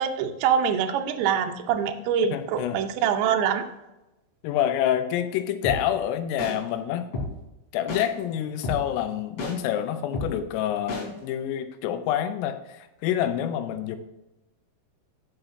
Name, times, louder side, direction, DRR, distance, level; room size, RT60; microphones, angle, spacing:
voice 1, 0.0-3.7, right 7 dB, 85° right, 4 dB, 2.3 m, -24 dB
voice 2, 2.3-2.8 4.4-7.1 7.7-14.0, left 10 dB, 90° left, 9 dB, 3.4 m, -27 dB
sound 1, 5.6-5.8 6.4-6.5 7.1-7.3 7.9-8.0 8.6-8.8 9.4-9.5 10.1-10.3 10.9-11.0, left 2 dB, 35° left, 4.4 m, -29 dB
16.0 x 5.7 x 2.7 m, 0.96 s
omnidirectional pair, 5.7 m